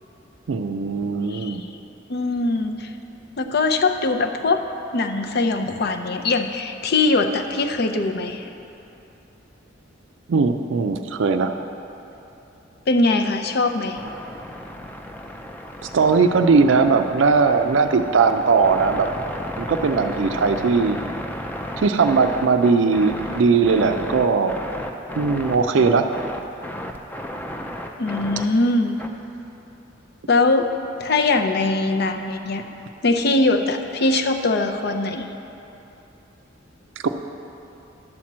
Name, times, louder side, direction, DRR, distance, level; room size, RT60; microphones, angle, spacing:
voice 1, 0.5-1.6 10.3-11.5 15.9-19.1 19.6-21.0 21.8-24.5 25.2-26.1 37.0-37.1, right 4 dB, 80° right, 6 dB, 0.4 m, -19 dB
voice 2, 1.3-1.7 2.1-2.9 3.4-4.6 4.9-8.5 12.9-14.0 28.0-29.0 30.3-30.7 31.0-32.6 33.0-35.3, left 3 dB, 60° left, 6 dB, 0.6 m, -21 dB
sound 1, 14.0-29.1, equal, 10° left, 0.4 m, -34 dB
11.5 x 4.4 x 7.3 m, 3.0 s
head